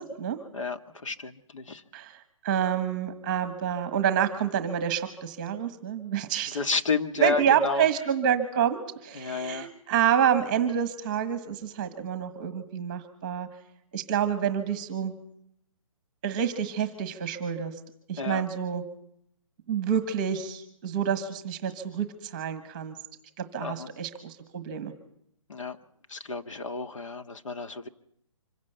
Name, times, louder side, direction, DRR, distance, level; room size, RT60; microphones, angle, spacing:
voice 1, 0.0-0.4 1.9-6.6 7.2-13.5 13.9-15.1 16.2-17.7 18.1-18.8 19.7-23.0 23.4-24.9, right 9 dB, 15° right, 9 dB, 1.3 m, -28 dB
voice 2, 0.5-1.8 6.5-7.9 9.2-9.7 18.2-18.4 23.6-23.9 25.5-25.8 26.1-27.9, left 4 dB, 65° left, 8 dB, 1.8 m, -31 dB
25.5 x 16.0 x 8.1 m, 0.72 s
hypercardioid pair, 180°, 17 cm